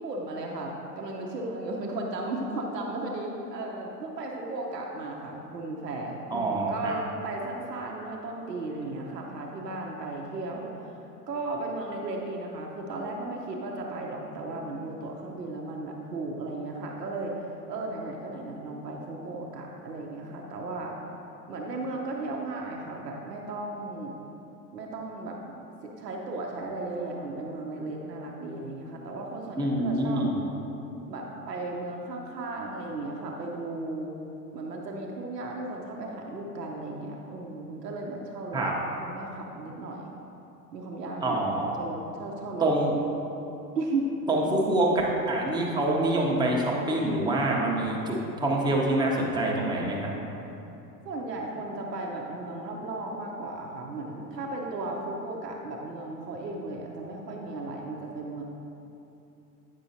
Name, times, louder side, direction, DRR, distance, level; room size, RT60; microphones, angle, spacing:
voice 1, 0.0-10.7 11.3-17.4 17.7-20.9 21.5-24.2 24.7-25.5 25.8-30.3 31.1-34.1 34.5-38.6 39.0-40.1 40.7-42.7 43.7-44.1 51.0-58.4, right 2 dB, 75° right, 0 dB, 0.8 m, -35 dB
voice 2, 6.3-6.9 29.6-30.3 38.5-38.7 41.2-41.7 42.6-43.0 44.3-44.9 45.3-50.1, right 1 dB, 10° right, -2 dB, 0.8 m, -26 dB
8.8 x 5.5 x 2.7 m, 2.9 s
figure-of-eight pair, 85°, 49 cm